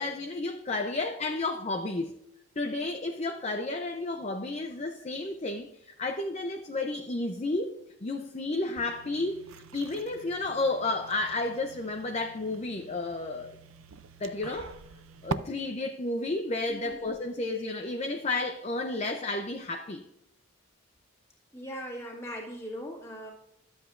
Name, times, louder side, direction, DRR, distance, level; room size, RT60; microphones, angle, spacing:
voice 1, 0.0-2.2 2.6-13.6 14.2-14.7 15.2-20.0, left 2 dB, 30° left, 4 dB, 0.5 m, -32 dB
sound 1, 8.8-15.3, right 5 dB, 75° right, 0.5 m, -43 dB
voice 2, 16.7-17.0 21.5-23.3, equal, 15° left, -2 dB, 2.0 m, -40 dB
12.0 x 7.8 x 2.5 m, 0.82 s
head